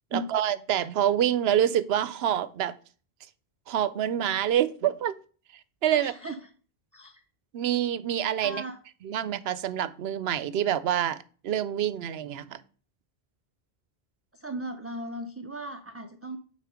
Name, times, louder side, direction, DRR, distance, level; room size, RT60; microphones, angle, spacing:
voice 1, 0.1-2.8 3.7-5.2 5.8-6.1 7.5-8.6 9.0-12.6, right 10 dB, 80° right, 0.8 m, -26 dB
voice 2, 5.9-6.4 6.9-7.2 8.4-8.8 14.3-16.4, right 1 dB, 20° right, 0.4 m, -36 dB
9.2 x 4.0 x 4.9 m
omnidirectional pair, 1.0 m